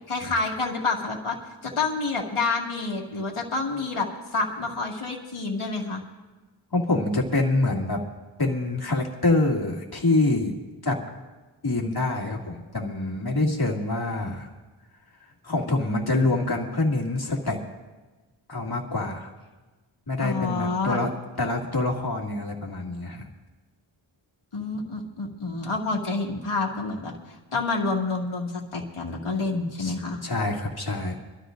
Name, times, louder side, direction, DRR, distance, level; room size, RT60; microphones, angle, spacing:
voice 1, 0.1-1.4 1.6-4.1 4.3-6.0 20.2-21.0 24.5-27.1 27.5-30.2, left 3 dB, 80° left, -1 dB, 2.2 m, -28 dB
voice 2, 6.7-8.0 8.4-10.5 10.8-11.0 11.6-14.5 15.4-17.6 18.5-19.3 20.1-21.1 21.4-23.2 29.8-29.9 30.2-31.2, left 2 dB, 50° left, -1 dB, 2.4 m, -25 dB
25.0 x 13.5 x 2.6 m, 1.2 s
wide cardioid pair, 65°, 49 cm